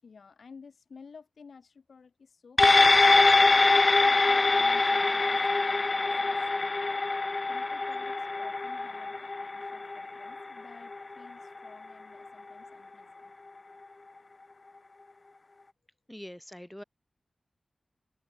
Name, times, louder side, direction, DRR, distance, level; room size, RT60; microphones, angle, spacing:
voice 1, 0.0-3.1 4.0-6.7 7.5-13.3, left 5 dB, 80° left, 7.2 m, -53 dB
sound 1, 2.6-11.3 11.7-11.8, left 3 dB, 40° left, 0.9 m, -24 dB
voice 2, 16.1-16.8, equal, 5° left, 1.7 m, -43 dB
wide cardioid pair, 95°, 0 cm